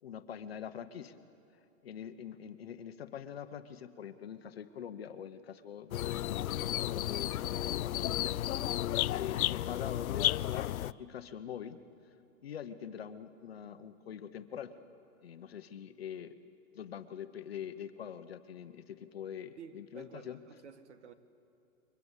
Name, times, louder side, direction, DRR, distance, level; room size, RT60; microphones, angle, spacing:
voice 1, 0.0-1.1 1.8-8.5 9.1-11.8 12.4-14.7 15.2-16.4 16.7-20.4, left 9 dB, 45° left, 10 dB, 1.0 m, -44 dB
sound 1, 5.9-10.9, left 13 dB, 90° left, 0.6 m, -33 dB
voice 2, 8.7-9.1 19.6-21.1, right 6 dB, 55° right, 11 dB, 1.7 m, -52 dB
29.0 x 23.5 x 8.2 m, 2.8 s
hypercardioid pair, 180°, 41 cm